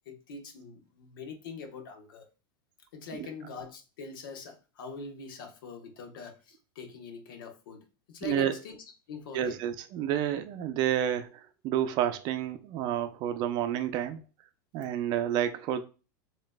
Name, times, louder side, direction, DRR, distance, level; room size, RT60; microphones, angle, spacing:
voice 1, 0.0-2.3 2.9-8.8 9.1-9.6, left 5 dB, 75° left, 1.1 m, -43 dB
voice 2, 8.2-8.5 9.3-14.2 14.7-15.8, right 10 dB, 40° right, 0.5 m, -30 dB
7.3 x 2.9 x 2.2 m
supercardioid pair, 150°, 11 cm